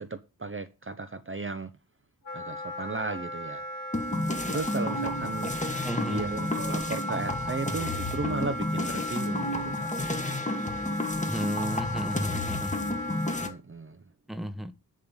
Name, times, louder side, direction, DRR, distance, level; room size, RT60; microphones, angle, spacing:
voice 1, 0.0-1.7 2.3-3.6 4.5-5.5 6.1-10.3 13.4-14.0, right 3 dB, 30° right, 0.7 m, -35 dB
Wind instrument woodwind instrument, 2.2-13.5, left 1 dB, 55° left, 3.0 m, -36 dB
sound 1, 3.9-13.5, left 1 dB, 20° left, 1.4 m, -31 dB
voice 2, 5.8-6.3 11.3-12.8 14.3-14.7, right 1 dB, ahead, 1.0 m, -33 dB
10.5 x 3.8 x 7.1 m
wide cardioid pair, 85°, 40 cm